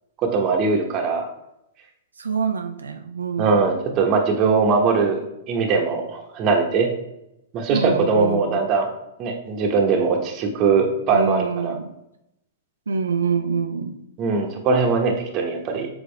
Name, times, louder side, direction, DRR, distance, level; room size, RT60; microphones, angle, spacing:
voice 1, 0.2-1.2 3.4-5.2 5.5-6.9 7.5-8.9 9.2-11.8 14.2-15.9, right 4 dB, 35° right, 2 dB, 1.0 m, -21 dB
voice 2, 2.2-3.6 7.7-8.6 11.1-11.9 12.9-14.0, right 5 dB, 85° right, 6 dB, 0.5 m, -25 dB
6.9 x 4.1 x 3.3 m, 0.83 s
hypercardioid pair, 110°, 0 cm